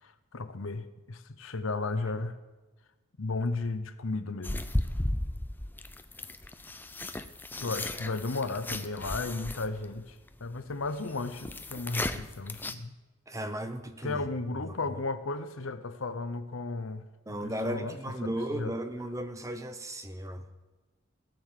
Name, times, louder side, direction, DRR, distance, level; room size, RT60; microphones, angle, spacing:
voice 1, 0.0-2.4 3.2-4.7 7.6-12.9 14.0-17.0 17.4-18.0 18.2-18.7, left 3 dB, 75° left, 11 dB, 0.9 m, -34 dB
sound 1, 4.4-12.7, left 1 dB, 10° left, 0.5 m, -35 dB
voice 2, 13.3-14.2 14.6-14.8 17.3-20.4, right 1 dB, 15° right, 8 dB, 0.9 m, -35 dB
16.5 x 7.1 x 7.5 m, 1.2 s
head